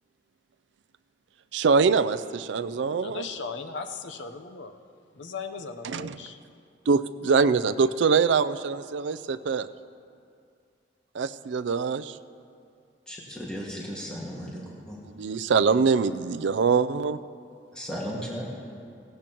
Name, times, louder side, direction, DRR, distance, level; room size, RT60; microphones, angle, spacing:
voice 1, 1.5-3.3 5.8-6.2 6.9-9.7 11.1-12.2 15.2-17.2, right 5 dB, 75° right, 12 dB, 0.4 m, -24 dB
voice 2, 3.0-4.7 5.1-6.4, left 4 dB, 75° left, 6 dB, 0.8 m, -37 dB
voice 3, 13.1-15.0 17.7-18.4, equal, 5° left, -5 dB, 1.8 m, -36 dB
17.0 x 16.5 x 3.0 m, 2.4 s
head